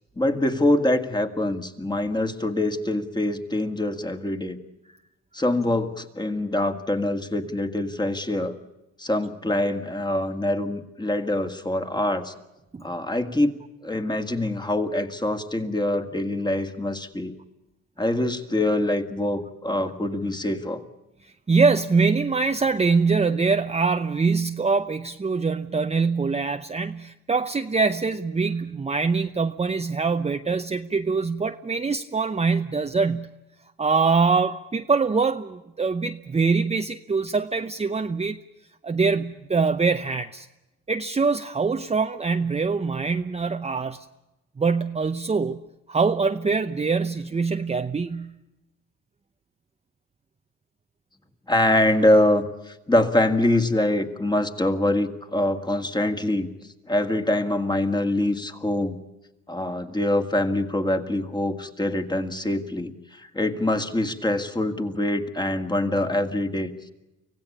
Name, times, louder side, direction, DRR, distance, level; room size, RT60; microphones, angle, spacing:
voice 1, 0.2-4.6 5.3-8.6 9.0-12.3 12.8-17.3 18.0-20.8 51.5-56.5 56.9-59.0 59.5-66.7, left 1 dB, 15° left, 7 dB, 2.0 m, -24 dB
voice 2, 21.5-33.3 33.8-38.4 38.8-40.5 40.9-44.1 44.6-45.6 45.9-48.4, right 4 dB, 20° right, 7 dB, 0.8 m, -23 dB
25.5 x 16.5 x 8.6 m, 0.97 s
cardioid pair, 90°, 30 cm